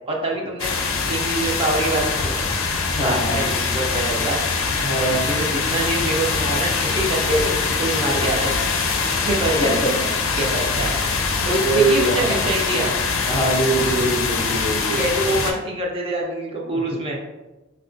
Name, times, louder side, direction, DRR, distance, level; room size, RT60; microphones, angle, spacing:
voice 1, 0.1-0.8 1.1-2.5 3.0-4.5 5.1-8.5 9.1-9.9 10.4-10.9 11.4-12.9 14.9-17.2, right 2 dB, 30° right, -2 dB, 0.5 m, -25 dB
sound 1, 0.6-15.5, left 4 dB, 90° left, 0.5 m, -23 dB
voice 2, 3.0-3.4 4.8-5.2 9.6-9.9 11.6-12.5 13.3-15.0, right 2 dB, 30° left, -1 dB, 0.6 m, -22 dB
4.1 x 2.3 x 2.5 m, 1.1 s
head